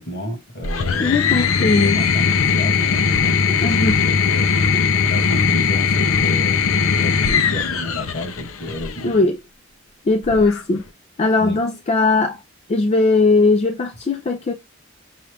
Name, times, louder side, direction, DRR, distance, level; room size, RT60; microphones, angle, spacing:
voice 1, 0.0-1.2 1.5-4.5 5.0-9.2 11.4-11.6, left 1 dB, 55° left, 1.8 m, -31 dB
sound 1, 0.6-9.0 10.2-10.9, left 6 dB, 80° left, 0.6 m, -19 dB
voice 2, 1.0-2.0 3.5-4.0 9.0-9.4 10.1-10.8 11.2-12.4 12.7-14.5, left 3 dB, 30° left, 0.4 m, -18 dB
5.6 x 2.4 x 3.3 m
head